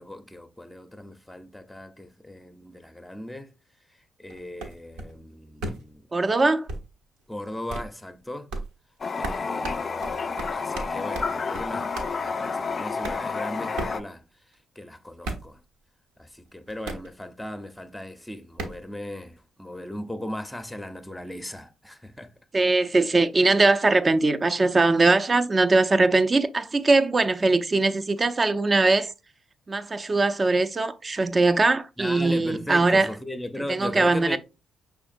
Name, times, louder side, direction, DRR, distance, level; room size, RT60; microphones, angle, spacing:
voice 1, 0.0-3.5 3.9-6.1 7.3-8.5 9.2-15.6 16.2-22.3 32.0-34.4, left 1 dB, 5° left, 0.6 m, -37 dB
sound 1, 4.3-5.2 5.6-5.9 6.7-6.9 7.2-7.3 7.7-7.9 8.5-8.7 9.2-9.4 9.6-11.3 11.5-11.7 12.0-12.1 13.0-13.2 13.8-14.0 14.5-14.6 15.2-15.6 16.7-17.1 18.6-18.8, right 2 dB, 75° right, 0.8 m, -34 dB
voice 2, 6.1-6.7 22.5-29.1 29.7-33.1 33.7-34.4, right 3 dB, 35° right, 0.5 m, -21 dB
Toilet flush, 9.0-14.0, left 5 dB, 45° left, 0.4 m, -30 dB
5.6 x 3.5 x 2.6 m
hypercardioid pair, 45°, 0 cm